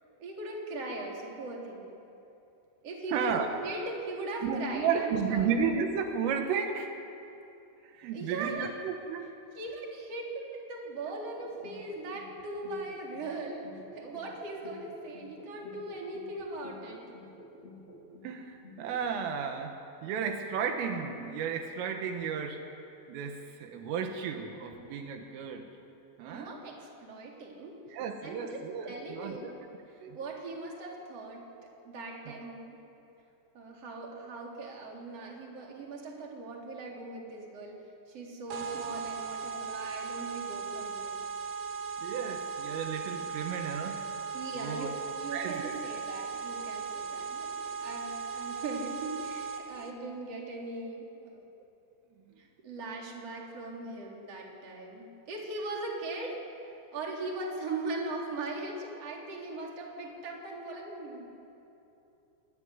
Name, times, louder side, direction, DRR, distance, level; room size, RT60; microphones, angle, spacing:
voice 1, 0.2-1.9 2.8-5.5 8.1-8.7 9.5-10.3 10.7-17.2 26.2-27.8 28.2-29.6 30.1-31.5 31.8-32.8 33.5-37.8 38.1-41.2 44.3-51.5 52.4-56.5 56.9-61.3, right 2 dB, 30° right, -1 dB, 4.4 m, -39 dB
voice 2, 3.1-3.5 4.4-6.9 7.8-9.3 18.2-19.8 20.0-22.6 23.1-25.7 26.2-26.6 27.9-29.5 30.0-30.2 32.3-32.4 42.0-44.1 44.5-44.9 45.3-45.8, right 6 dB, 80° right, 4 dB, 4.1 m, -33 dB
sound 1, 11.4-14.3 14.6-18.3 18.6-19.3, left 1 dB, 15° left, 3.2 m, -51 dB
sound 2, 38.5-49.9, right 5 dB, 65° right, 2.2 m, -38 dB
25.5 x 21.0 x 9.9 m, 2.8 s
omnidirectional pair, 5.9 m